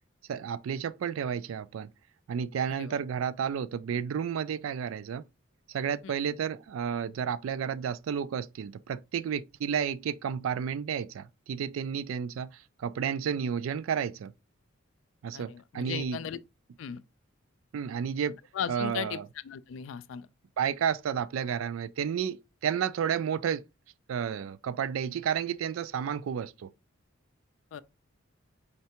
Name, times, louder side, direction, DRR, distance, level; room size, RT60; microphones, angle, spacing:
voice 1, 0.3-1.9 2.3-5.2 5.7-14.3 15.2-16.2 17.7-18.4 18.7-19.3 20.6-23.6 24.1-26.7, right 7 dB, 80° right, 0.3 m, -31 dB
voice 2, 15.3-16.4 16.8-17.0 18.5-19.2 19.4-20.3 27.7-27.8, left 8 dB, 70° left, 0.3 m, -36 dB
4.4 x 3.2 x 2.8 m
head